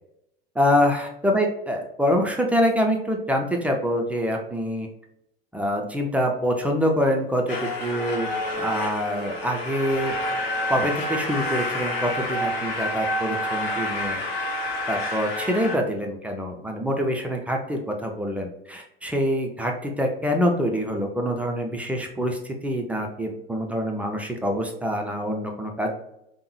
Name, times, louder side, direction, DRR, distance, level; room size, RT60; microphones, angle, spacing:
voice 1, 0.6-4.9 5.5-8.3 8.6-10.1 10.7-14.2 14.9-25.9, equal, 5° right, 1 dB, 0.3 m, -25 dB
sound 1, 7.5-15.8, left 1 dB, 65° left, 0.8 m, -28 dB
3.4 x 2.0 x 3.0 m, 0.80 s
figure-of-eight pair, 75°, 31 cm